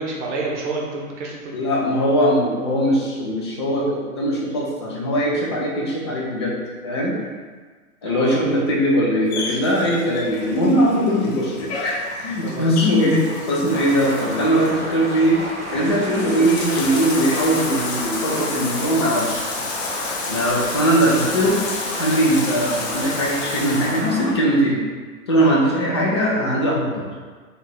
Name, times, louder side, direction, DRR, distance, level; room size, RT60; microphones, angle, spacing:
voice 1, 0.0-1.7 8.0-8.4 12.4-12.7 25.3-25.6, right 3 dB, 55° right, -1 dB, 0.9 m, -29 dB
voice 2, 1.5-6.6 6.8-7.2 8.0-13.2 13.5-15.4 15.7-19.4 20.3-21.6 22.0-24.8 25.3-27.0, equal, 20° left, -4 dB, 0.3 m, -20 dB
Bathtub (filling or washing), 9.3-24.1, left 3 dB, 50° left, 0.7 m, -31 dB
sound 1, 13.7-24.3, equal, 5° right, 0.9 m, -32 dB
3.1 x 2.3 x 3.5 m, 1.5 s
figure-of-eight pair, 115°, 43 cm